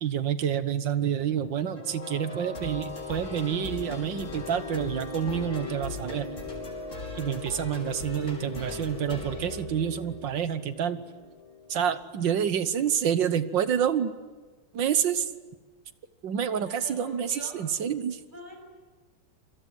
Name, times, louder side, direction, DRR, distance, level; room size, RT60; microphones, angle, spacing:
voice 1, 0.0-6.3 7.1-11.0 11.7-14.1 14.7-15.3 16.2-18.2, right 8 dB, 75° right, 12 dB, 1.9 m, -28 dB
sound 1, 1.2-12.0, left 5 dB, 90° left, 2.7 m, -40 dB
sound 2, 1.8-10.3, left 1 dB, 40° left, 5.8 m, -42 dB
voice 2, 16.5-17.5 18.3-18.6, equal, 25° right, 2 dB, 7.7 m, -44 dB
28.5 x 22.0 x 9.5 m, 1.3 s
omnidirectional pair, 2.1 m